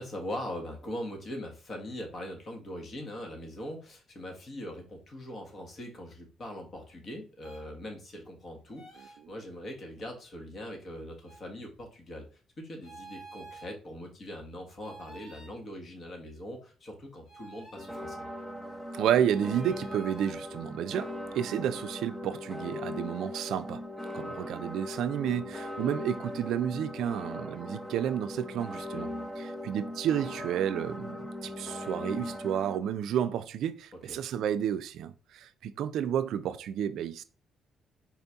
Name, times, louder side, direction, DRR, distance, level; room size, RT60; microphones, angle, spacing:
voice 1, 0.0-12.2 12.6-18.2 28.9-29.3 34.1-34.2, left 1 dB, 45° left, 1.4 m, -41 dB
sound 1, 7.4-7.7 8.7-9.2 11.2-11.4 12.8-13.7 14.8-15.6 17.2-17.9 19.2-20.3, right 2 dB, 80° left, 2.2 m, -50 dB
sound 2, 17.8-32.8, left 1 dB, 5° left, 0.7 m, -39 dB
voice 2, 18.9-21.1 21.3-23.8 24.1-29.1 29.4-37.2, right 9 dB, 80° right, 0.3 m, -31 dB
4.3 x 2.7 x 3.4 m
cardioid pair, 90°, 0 cm